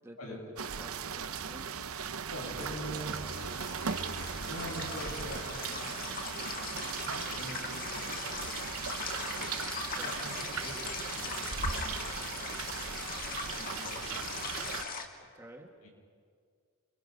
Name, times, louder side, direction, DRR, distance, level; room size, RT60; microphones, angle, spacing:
voice 1, 0.0-0.4 0.8-1.8 9.8-10.1 15.3-15.7, right 1 dB, 15° right, 1 dB, 1.8 m, -51 dB
sound 1, 0.6-14.8, right 6 dB, 75° right, 0.8 m, -38 dB
voice 2, 2.3-3.1 4.5-8.6 10.0-12.8 13.5-14.2 14.6-15.4 15.8-15.9, equal, 85° left, -2 dB, 7.9 m, -45 dB
sound 2, 2.3-15.1, left 4 dB, 40° left, 1.9 m, -40 dB
sound 3, 2.5-5.7, right 1 dB, 55° right, 1.7 m, -45 dB
29.0 x 24.0 x 5.5 m, 2.1 s
head